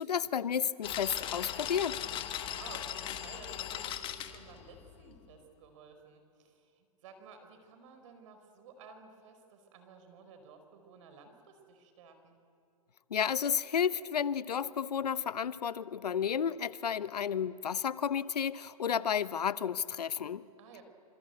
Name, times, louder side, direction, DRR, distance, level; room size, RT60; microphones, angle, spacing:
voice 1, 0.0-2.0 13.1-20.4, left 8 dB, 85° left, 16 dB, 1.0 m, -32 dB
sound 1, 0.8-5.2, left 11 dB, 25° left, 1.6 m, -39 dB
voice 2, 2.4-12.4 20.6-20.8, right 5 dB, 50° right, 7 dB, 4.9 m, -54 dB
26.5 x 25.5 x 8.0 m, 2.5 s
hypercardioid pair, 130°, 20 cm